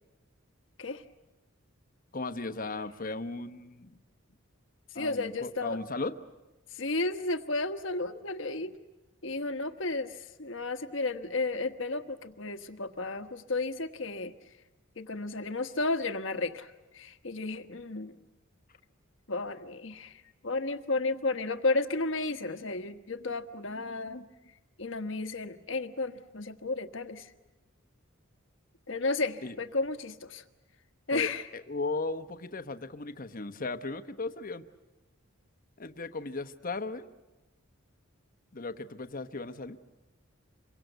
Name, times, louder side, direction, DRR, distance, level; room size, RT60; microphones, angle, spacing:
voice 1, 2.1-4.0 4.9-6.2 29.4-29.6 31.1-34.6 35.8-37.1 38.5-39.8, left 3 dB, 40° left, 10 dB, 1.1 m, -36 dB
voice 2, 4.9-5.8 6.7-8.7 9.2-14.3 15.0-18.2 19.3-24.3 24.8-27.3 28.9-30.4 31.1-31.5, left 3 dB, 65° left, 8 dB, 1.3 m, -33 dB
27.5 x 23.5 x 8.1 m, 1.1 s
head